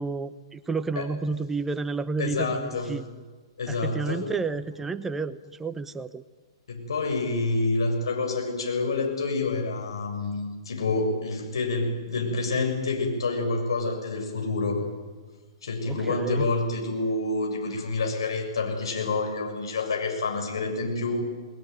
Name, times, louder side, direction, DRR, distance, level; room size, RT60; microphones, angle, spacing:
voice 1, 0.0-3.0 3.7-6.2 15.8-16.5, right 4 dB, 10° right, 14 dB, 0.8 m, -31 dB
voice 2, 2.2-2.9 3.6-4.2 6.7-14.8 15.6-21.3, left 3 dB, 70° left, 3 dB, 7.1 m, -28 dB
29.0 x 20.0 x 9.3 m, 1.4 s
figure-of-eight pair, 110°, 3 cm